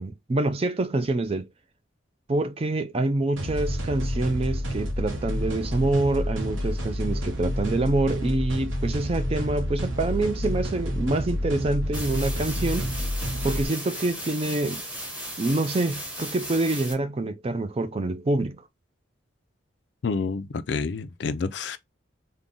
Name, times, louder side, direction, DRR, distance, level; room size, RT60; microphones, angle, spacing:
voice 1, 0.0-1.5 2.3-12.9 13.4-14.8 15.4-18.6, right 2 dB, 30° right, 0.4 m, -26 dB
sound 1, 3.4-13.6, equal, 75° right, 0.9 m, -29 dB
sound 2, 11.9-16.9, equal, 5° right, 1.0 m, -36 dB
voice 2, 20.0-21.8, left 4 dB, 60° left, 0.4 m, -28 dB
3.6 x 2.2 x 3.8 m
head